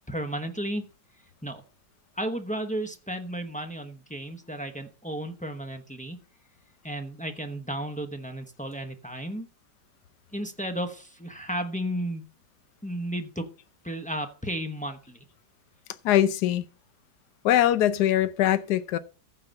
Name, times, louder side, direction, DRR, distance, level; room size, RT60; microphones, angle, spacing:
voice 1, 0.1-0.8 1.4-1.6 2.2-6.2 6.8-9.5 10.3-12.2 12.8-13.5 13.8-15.2, right 1 dB, 5° left, 0.6 m, -33 dB
voice 2, 16.0-16.6 17.4-19.0, left 12 dB, 65° left, 1.2 m, -22 dB
14.5 x 4.9 x 5.4 m
omnidirectional pair, 2.0 m